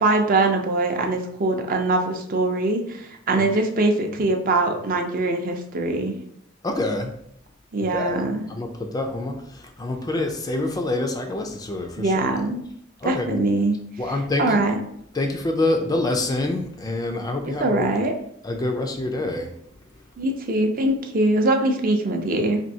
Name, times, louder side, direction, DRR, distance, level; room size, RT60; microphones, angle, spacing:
voice 1, 0.0-6.1 7.7-8.4 12.0-12.6 13.0-13.8 14.4-14.8 17.6-18.1 20.2-22.6, right 2 dB, 45° right, 3 dB, 0.5 m, -22 dB
voice 2, 6.6-7.1 7.9-12.3 13.0-13.4 14.0-14.6 15.1-17.9 18.4-19.5, left 2 dB, 20° left, 4 dB, 0.3 m, -26 dB
4.2 x 2.6 x 2.7 m, 0.71 s
head